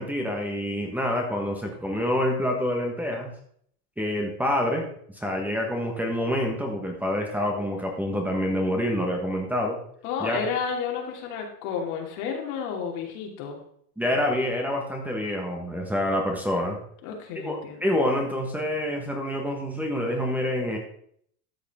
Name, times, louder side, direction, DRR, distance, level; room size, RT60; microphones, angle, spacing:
voice 1, 0.0-3.3 4.0-4.9 5.1-9.8 10.2-10.4 14.0-16.8 17.4-20.8, left 1 dB, 5° right, -1 dB, 1.3 m, -27 dB
voice 2, 10.0-13.6 17.0-17.8, left 6 dB, 65° left, 1 dB, 2.8 m, -31 dB
13.0 x 6.7 x 3.6 m, 0.65 s
supercardioid pair, 140°, 47 cm